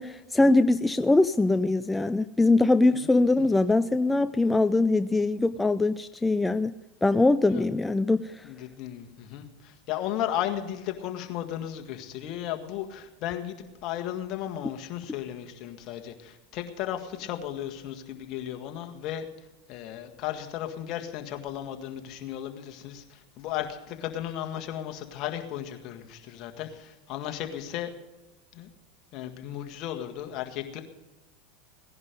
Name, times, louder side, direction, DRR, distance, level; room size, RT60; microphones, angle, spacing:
voice 1, 0.0-6.7 7.0-8.5, left 2 dB, 10° left, 12 dB, 0.4 m, -22 dB
voice 2, 2.9-3.5 7.5-7.6 8.4-19.3 19.7-27.9 28.5-28.7 29.1-30.8, left 11 dB, 50° left, 5 dB, 1.7 m, -35 dB
17.5 x 11.0 x 5.2 m, 1.1 s
hypercardioid pair, 100°, 0 cm